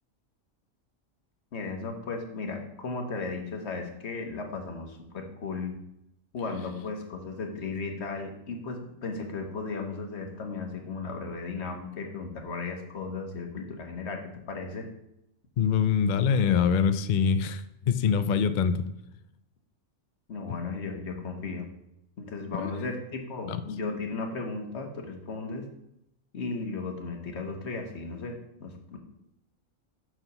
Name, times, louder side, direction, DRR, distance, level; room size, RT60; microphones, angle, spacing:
voice 1, 1.5-5.7 6.3-14.9 20.3-21.7 22.2-25.7 26.3-29.0, left 4 dB, 55° left, 4 dB, 1.4 m, -35 dB
voice 2, 15.6-18.9 22.6-22.7 23.5-23.6, left 6 dB, 75° left, 11 dB, 0.4 m, -24 dB
5.7 x 4.8 x 6.6 m, 0.83 s
omnidirectional pair, 1.4 m